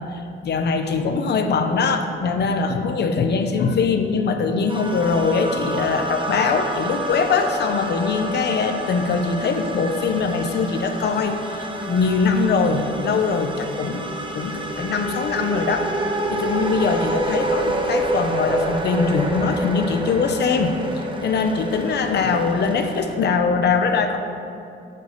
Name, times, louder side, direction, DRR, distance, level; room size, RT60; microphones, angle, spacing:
voice 1, 0.1-14.0 14.3-15.9 16.3-20.8 21.2-24.2, left 4 dB, 60° left, 6 dB, 0.8 m, -22 dB
sound 1, 4.7-23.2, right 1 dB, 25° right, 0.9 m, -28 dB
7.0 x 6.7 x 5.1 m, 2.5 s
cardioid pair, 90°, 20 cm